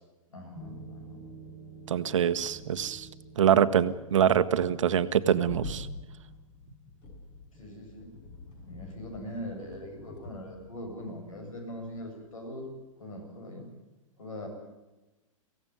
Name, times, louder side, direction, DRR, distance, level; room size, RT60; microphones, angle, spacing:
voice 1, 0.3-1.2 7.5-8.1 8.6-12.7 13.0-13.7 14.2-14.5, left 1 dB, 70° left, 4 dB, 8.0 m, -41 dB
sound 1, 0.5-12.1 12.3-12.6, left 1 dB, 40° left, 6.8 m, -47 dB
voice 2, 1.9-3.1 3.4-5.9, right 9 dB, 60° right, 12 dB, 1.3 m, -24 dB
24.0 x 17.0 x 9.6 m, 1.1 s
figure-of-eight pair, 110°, 18 cm